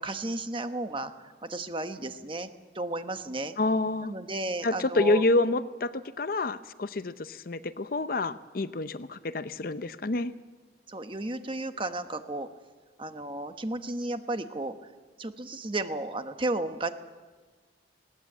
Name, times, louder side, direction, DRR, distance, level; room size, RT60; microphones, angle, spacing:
voice 1, 0.0-2.5 2.7-3.5 4.0-5.2 10.9-12.5 13.0-14.7 15.2-16.9, right 2 dB, 30° right, 9 dB, 1.1 m, -33 dB
voice 2, 3.6-4.1 4.6-10.3, left 2 dB, 50° left, 14 dB, 0.6 m, -28 dB
20.5 x 17.5 x 8.6 m, 1.4 s
head